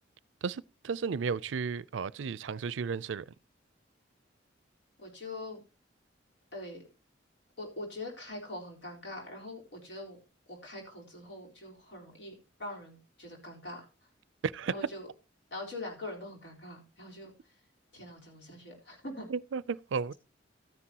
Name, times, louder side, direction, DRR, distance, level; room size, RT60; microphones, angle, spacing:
voice 1, 0.4-3.3 14.4-14.7 19.3-20.1, right 5 dB, 85° right, 0.4 m, -33 dB
voice 2, 5.0-5.6 6.5-6.8 7.6-10.2 10.5-12.3 12.6-13.9 14.7-15.1 15.5-17.3 17.9-19.3, left 2 dB, 70° left, 4.1 m, -43 dB
13.5 x 9.9 x 2.9 m
head